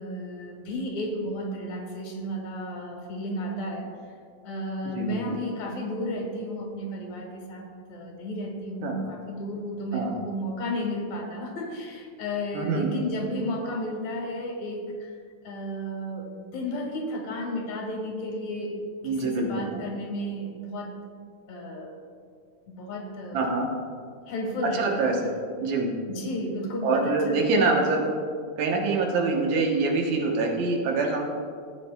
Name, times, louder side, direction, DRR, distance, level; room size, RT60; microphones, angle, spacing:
voice 1, 0.0-3.9 4.4-15.1 15.4-18.8 19.0-20.9 21.5-22.0 22.7-23.6 24.3-25.1 26.1-27.8, equal, 75° left, 1 dB, 2.5 m, -33 dB
voice 2, 4.9-5.4 8.8-9.0 9.9-10.1 12.5-12.9 19.0-19.5 19.7-19.8 23.3-23.7 24.7-25.3 25.6-26.0 26.8-28.0 28.6-31.2, right 3 dB, 75° right, 1 dB, 2.3 m, -25 dB
14.5 x 7.8 x 2.2 m, 2.1 s
omnidirectional pair, 3.3 m